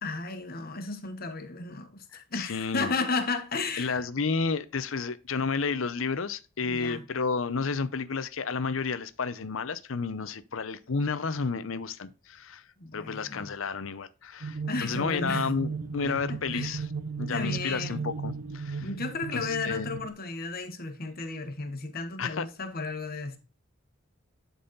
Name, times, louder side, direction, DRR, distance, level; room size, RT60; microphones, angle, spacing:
voice 1, 0.0-4.0 6.6-7.0 12.8-13.5 14.7-15.5 16.0-16.8 17.3-18.1 18.8-23.4, left 3 dB, 45° left, 1.2 m, -34 dB
voice 2, 2.1-2.9 3.8-12.6 12.9-16.8 17.2-18.9 19.3-19.9 22.2-22.5, left 5 dB, 70° left, 0.7 m, -31 dB
sound 1, 14.4-20.1, right 4 dB, 75° right, 0.8 m, -36 dB
11.5 x 4.1 x 4.0 m
head